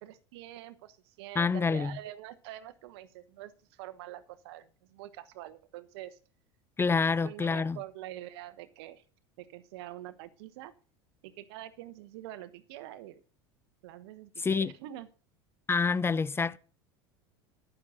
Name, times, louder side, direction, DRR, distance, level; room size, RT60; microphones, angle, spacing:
voice 1, 0.0-6.2 6.9-7.0 7.2-9.0 9.4-10.7 11.2-13.2 13.8-15.1, right 14 dB, 75° right, 1.1 m, -45 dB
voice 2, 1.4-2.0 6.8-7.8 14.4-14.7 15.7-16.6, left 5 dB, 15° left, 0.5 m, -27 dB
12.5 x 6.5 x 6.4 m
supercardioid pair, 100°, 13 cm